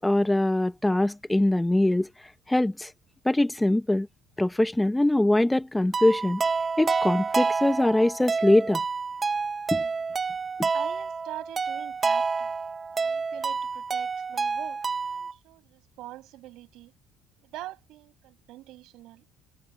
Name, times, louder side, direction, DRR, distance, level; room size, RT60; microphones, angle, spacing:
voice 1, 0.0-2.1 2.5-2.9 3.3-4.1 4.4-6.4 6.8-8.8 9.7-9.8, left 1 dB, 10° left, 0.7 m, -22 dB
sound 1, 5.9-15.3, right 4 dB, 30° right, 0.7 m, -28 dB
voice 2, 10.7-12.5 12.9-16.9 17.5-19.2, right 16 dB, 75° right, 7.3 m, -44 dB
cardioid pair, 100°, 0 cm